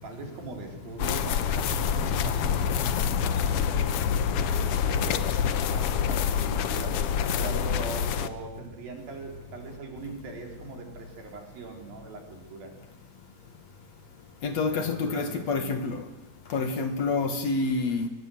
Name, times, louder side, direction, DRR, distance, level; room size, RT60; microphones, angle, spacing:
voice 1, 0.0-3.9 4.5-7.0 7.4-12.7 14.7-15.7 16.6-16.7, right 4 dB, 85° right, 5.8 m, -41 dB
sound 1, 1.0-8.3, left 7 dB, 75° left, 1.3 m, -27 dB
voice 2, 14.4-16.0 16.5-18.1, left 4 dB, 55° left, 2.7 m, -28 dB
24.0 x 20.5 x 7.8 m
omnidirectional pair, 4.0 m